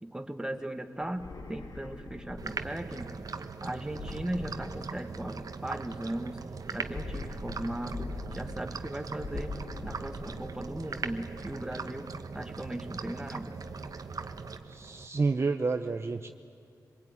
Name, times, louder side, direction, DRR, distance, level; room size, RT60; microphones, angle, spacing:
voice 1, 0.0-3.2 3.6-6.4 6.7-9.6 9.8-12.1 12.3-13.5, right 1 dB, 10° right, 6 dB, 1.8 m, -37 dB
sound 1, 1.0-2.9 3.8-5.3 6.7-8.8 9.1-10.9, left 3 dB, 75° left, 2.1 m, -42 dB
sound 2, 2.4-15.1, right 4 dB, 65° right, 1.2 m, -40 dB
voice 2, 14.7-16.3, right 4 dB, 40° right, 7 dB, 0.8 m, -29 dB
25.0 x 21.0 x 9.8 m, 2.4 s
wide cardioid pair, 90°, 7 cm